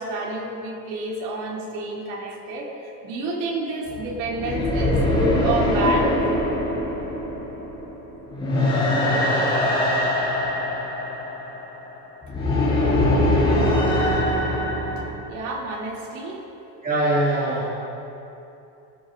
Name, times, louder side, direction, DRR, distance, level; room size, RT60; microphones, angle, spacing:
voice 1, 0.0-6.1 15.3-16.4, right 1 dB, 70° right, -3 dB, 2.9 m, -29 dB
sound 1, 3.9-15.1, left 1 dB, 10° left, 3.2 m, -22 dB
voice 2, 16.8-17.7, right 1 dB, 20° right, -8 dB, 2.6 m, -22 dB
20.5 x 12.0 x 2.6 m, 2.9 s
cardioid pair, 145°, 45 cm